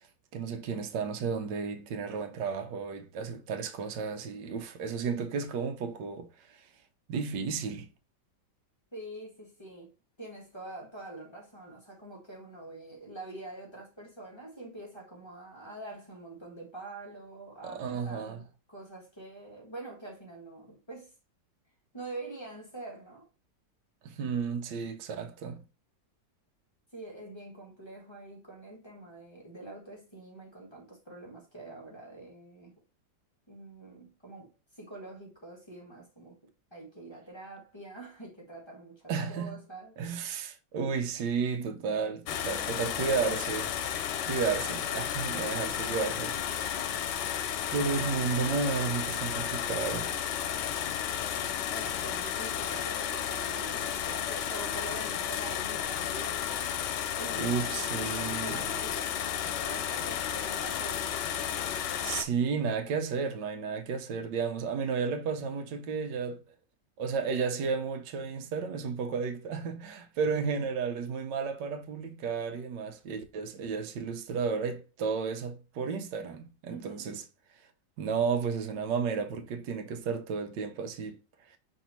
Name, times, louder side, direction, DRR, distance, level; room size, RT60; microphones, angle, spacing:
voice 1, 0.3-6.3 7.1-7.9 17.6-18.4 24.0-25.6 39.1-39.6 40.0-43.7 44.2-46.5 47.7-50.1 51.8-51.9 57.3-58.6 62.0-66.4 67.0-77.2 78.0-81.2, right 5 dB, 90° right, 1.4 m, -32 dB
voice 2, 8.9-9.9 10.2-21.1 21.9-23.3 26.9-32.7 33.5-36.4 36.7-40.2 51.2-56.7 57.2-61.6 76.6-77.2, right 2 dB, 15° left, 1.6 m, -45 dB
sound 1, 42.3-62.2, left 9 dB, 85° left, 1.3 m, -33 dB
5.4 x 3.3 x 2.9 m
omnidirectional pair, 1.8 m